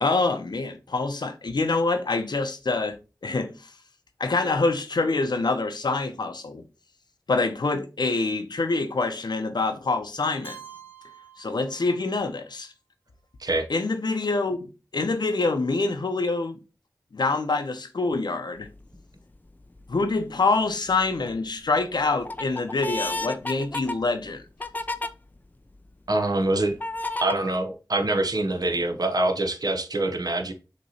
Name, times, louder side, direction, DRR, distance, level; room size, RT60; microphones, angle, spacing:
voice 1, 0.0-3.0 3.2-3.7 4.2-6.6 7.3-10.6 11.4-12.7 13.7-14.6 14.9-16.6 17.1-18.7 19.9-24.4, left 3 dB, 75° left, 0.7 m, -26 dB
Keyboard (musical), 10.4-12.4, right 7 dB, 30° right, 1.7 m, -47 dB
sound 1, 18.6-19.0 19.6-20.2 20.7-21.4 21.8-25.1 25.7-25.8 26.8-27.3, left 2 dB, 25° left, 0.4 m, -32 dB
voice 2, 26.1-26.8 27.2-30.5, right 2 dB, 60° right, 0.8 m, -25 dB
6.3 x 3.0 x 2.7 m
wide cardioid pair, 50°, 7 cm